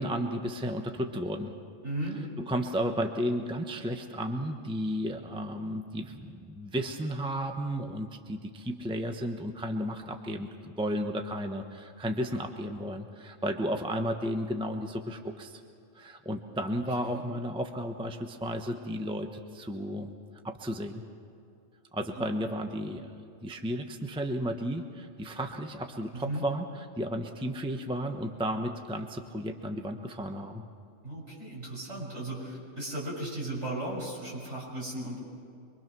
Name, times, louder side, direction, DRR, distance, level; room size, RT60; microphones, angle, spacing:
voice 1, 0.0-1.5 2.4-15.6 15.9-20.1 20.4-21.0 21.9-30.6, equal, 5° right, 4 dB, 1.0 m, -33 dB
voice 2, 1.8-2.2 17.0-17.2 22.1-22.2 26.1-26.4 31.0-35.2, right 1 dB, 60° right, -3 dB, 6.8 m, -36 dB
25.0 x 24.0 x 6.2 m, 2.5 s
omnidirectional pair, 1.4 m